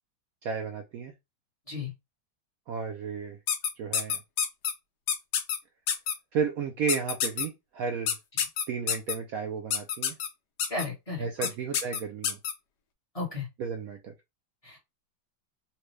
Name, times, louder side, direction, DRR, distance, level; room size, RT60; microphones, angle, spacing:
voice 1, 0.4-1.1 2.7-3.4 3.8-4.2 6.3-8.1 8.7-10.1 11.2-12.4 13.6-14.1, right 6 dB, 90° right, 0.7 m, -33 dB
sound 1, 3.5-4.7 5.1-5.6 5.9-6.1 6.9-7.5 8.1-9.1 9.7-10.3 10.6-10.8 11.4-11.5 11.7-12.5, left 8 dB, 70° left, 1.2 m, -27 dB
voice 2, 10.7-11.5 13.1-13.5 14.6-14.8, left 3 dB, 20° left, 1.0 m, -34 dB
4.3 x 2.2 x 3.1 m
omnidirectional pair, 2.1 m